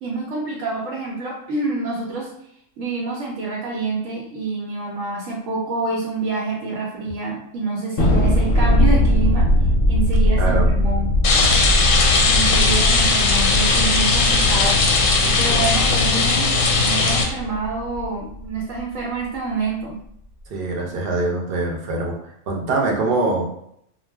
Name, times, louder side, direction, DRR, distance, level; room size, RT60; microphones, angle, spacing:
voice 1, 0.0-2.3 2.8-9.5 9.9-11.1 12.3-20.0, right 3 dB, 85° right, -4 dB, 1.0 m, -27 dB
Thunder, 8.0-18.6, left 1 dB, 55° left, 0.7 m, -20 dB
voice 2, 10.4-10.7 20.5-22.1 22.5-23.5, right 2 dB, 55° right, 0 dB, 0.7 m, -23 dB
Rain, 11.2-17.2, left 4 dB, 90° left, 1.0 m, -18 dB
2.3 x 2.1 x 3.3 m, 0.72 s
omnidirectional pair, 1.3 m